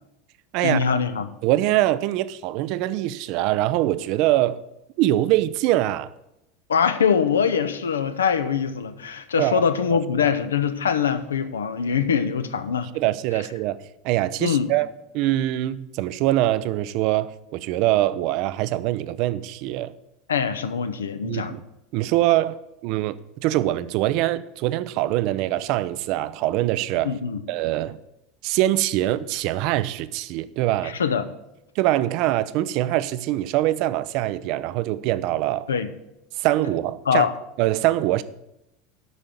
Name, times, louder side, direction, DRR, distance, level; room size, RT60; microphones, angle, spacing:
voice 1, 0.6-1.3 6.7-12.9 14.4-14.7 20.3-21.6 27.0-27.4 30.8-31.2 35.7-35.9 37.1-37.3, left 7 dB, 70° left, 0.7 m, -23 dB
voice 2, 1.4-4.6 5.0-6.1 9.4-9.6 10.2-10.3 12.9-13.8 14.0-19.9 21.2-21.6 21.9-23.2 23.4-27.1 27.5-28.0 28.4-31.0 31.8-35.7 36.4-37.3 37.6-38.2, right 15 dB, 50° right, 0.4 m, -23 dB
8.1 x 6.2 x 7.3 m
figure-of-eight pair, 75°, 0 cm